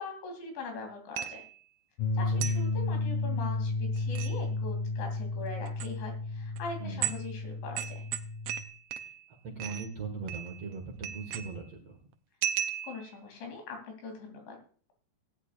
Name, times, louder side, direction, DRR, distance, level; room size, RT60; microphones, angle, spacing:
voice 1, 0.0-1.4 2.2-7.9 12.8-14.6, left 3 dB, 90° left, 3 dB, 5.2 m, -41 dB
sound 1, 1.2-1.6 2.4-2.7 4.0-4.4 5.7-5.9 6.6-6.7 7.0-7.3 7.8-9.3 9.6-9.9 10.3-10.8 11.0-11.7 12.4-13.2, right 10 dB, 80° right, 2.4 m, -36 dB
sound 2, 2.0-8.6, left 3 dB, 75° left, 2.1 m, -32 dB
voice 2, 9.4-12.0, right 4 dB, 55° right, 1 dB, 1.8 m, -39 dB
18.5 x 10.5 x 2.5 m, 0.42 s
omnidirectional pair, 5.0 m